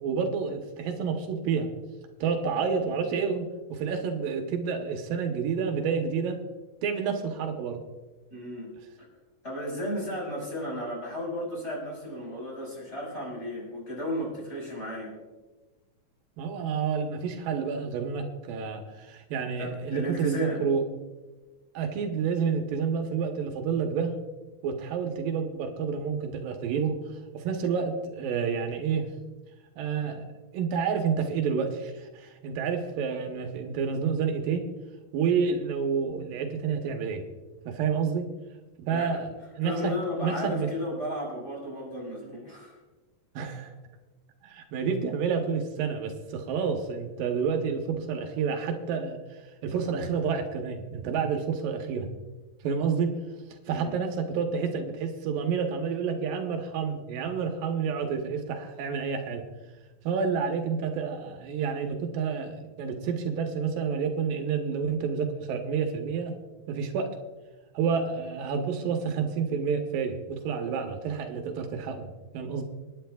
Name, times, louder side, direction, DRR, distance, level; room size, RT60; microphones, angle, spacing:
voice 1, 0.0-1.7 2.2-6.4 6.8-7.8 16.4-20.8 21.7-24.2 24.6-27.0 27.3-29.1 29.8-30.2 30.5-34.7 35.1-37.2 37.7-38.3 38.9-40.7 43.4-43.7 44.4-49.2 49.6-52.1 52.6-53.2 53.7-59.4 60.0-66.4 66.7-67.1 67.7-72.6, right 6 dB, 85° right, 4 dB, 2.7 m, -29 dB
voice 2, 8.3-8.7 9.4-15.1 19.6-20.6 38.9-39.2 39.6-42.8 53.7-53.9, left 1 dB, 20° left, -3 dB, 5.1 m, -34 dB
27.5 x 10.0 x 2.3 m, 1.2 s
omnidirectional pair, 3.9 m